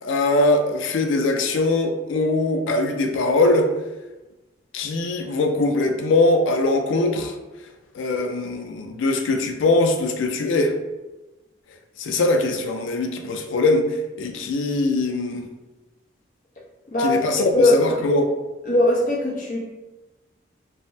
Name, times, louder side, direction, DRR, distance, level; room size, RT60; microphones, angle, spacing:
voice 1, 0.0-3.7 4.7-7.4 7.9-10.7 12.0-13.9 14.2-15.5 17.0-18.3, left 2 dB, 90° left, 5 dB, 0.4 m, -21 dB
voice 2, 16.9-17.2 17.5-18.0 18.7-19.6, left 1 dB, 45° left, -3 dB, 0.7 m, -19 dB
3.4 x 2.0 x 2.6 m, 1.1 s
head